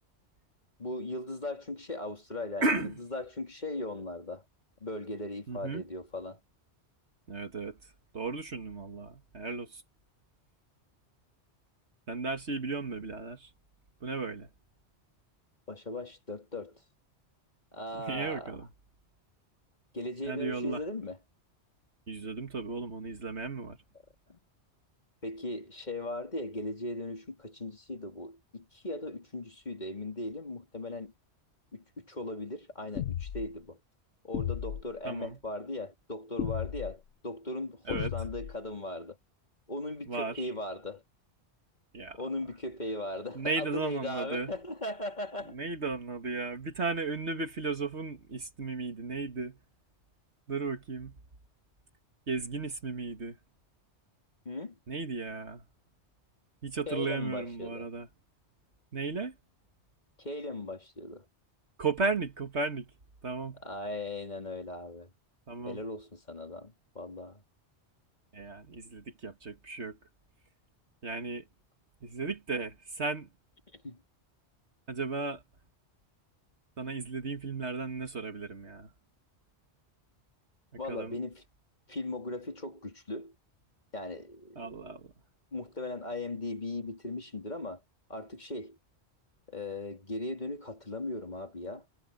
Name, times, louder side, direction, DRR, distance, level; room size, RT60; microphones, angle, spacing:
voice 1, 0.8-4.4 4.8-6.4 15.7-16.8 17.7-18.6 19.9-21.2 24.3-24.4 25.2-31.1 31.7-33.8 34.2-39.2 39.7-41.0 42.1-45.6 54.4-54.8 56.9-57.9 60.2-61.2 63.6-65.1 65.7-67.4 73.7-74.0 80.8-81.4 81.9-83.3 83.9-85.0 85.5-87.8 88.1-88.8 89.5-91.8, left 2 dB, 40° left, 3.2 m, -38 dB
voice 2, 2.6-2.9 5.5-5.8 7.3-9.8 12.1-13.5 14.0-14.5 17.9-18.7 20.2-20.8 22.1-23.8 35.0-35.4 37.9-38.1 40.1-40.5 41.9-42.2 43.3-44.5 45.5-49.6 50.5-51.2 52.3-53.4 54.9-55.6 56.6-58.1 58.9-59.3 61.8-62.9 63.2-63.6 65.5-65.8 68.3-70.0 71.0-71.5 72.0-73.3 74.9-75.4 76.8-78.9 80.9-81.2 84.6-85.1, right 3 dB, 70° right, 2.3 m, -35 dB
sound 1, 33.0-33.5 34.3-34.9 36.4-36.9 37.9-38.6, left 10 dB, 85° left, 1.1 m, -34 dB
omnidirectional pair, 1.2 m